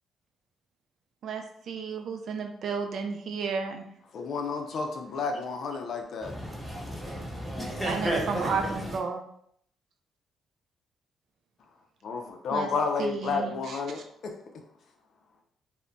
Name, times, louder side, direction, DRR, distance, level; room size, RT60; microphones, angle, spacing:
voice 1, 1.2-3.8 7.8-9.2 12.5-12.7 13.0-14.0, right 5 dB, 65° right, 0.4 m, -33 dB
voice 2, 4.1-6.3 12.0-14.3, left 4 dB, 65° left, 0.4 m, -31 dB
voice 3, 6.2-9.0, equal, 5° right, 0.9 m, -33 dB
2.1 x 2.1 x 3.8 m
cardioid pair, 90°, 0 cm